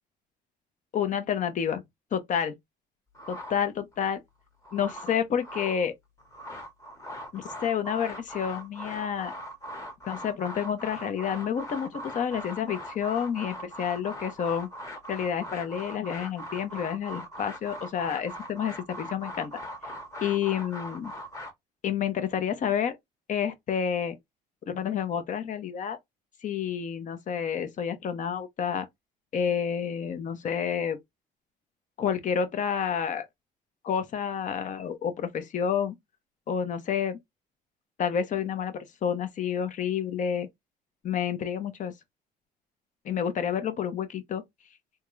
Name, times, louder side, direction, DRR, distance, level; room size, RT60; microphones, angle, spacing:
voice 1, 0.9-1.8 2.1-2.5 3.3-4.2 4.7-5.9 7.3-9.3 10.1-14.7 15.1-19.6 20.2-21.1 21.8-23.0 23.3-24.2 24.7-26.0 26.4-28.9 29.3-31.0 32.0-33.3 33.8-35.9 36.5-37.2 38.0-40.5 41.0-41.9 43.0-44.4, left 8 dB, 50° left, 0.8 m, -29 dB
sound 1, 3.1-4.0 4.5-5.8 6.2-21.5, equal, 20° left, 1.1 m, -40 dB
3.6 x 2.3 x 3.1 m
cardioid pair, 110°, 17 cm